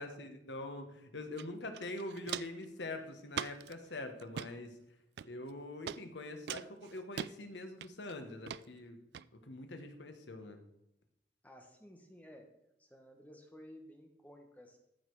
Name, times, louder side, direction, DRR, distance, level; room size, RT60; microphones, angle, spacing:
voice 1, 0.0-4.7 5.2-9.0 9.5-10.6, left 2 dB, 75° left, 6 dB, 1.5 m, -44 dB
Walk footsteps, 1.4-1.5 1.7-2.6 3.3-3.7 4.2-4.5 5.2-5.5 5.9-6.0 6.5-7.3 7.8-8.1 8.5-8.6 9.1-9.2, right 9 dB, 65° right, 0.3 m, -41 dB
voice 2, 11.4-12.5 12.8-14.8, equal, 10° left, 3 dB, 1.2 m, -55 dB
14.5 x 6.7 x 4.8 m, 0.82 s
head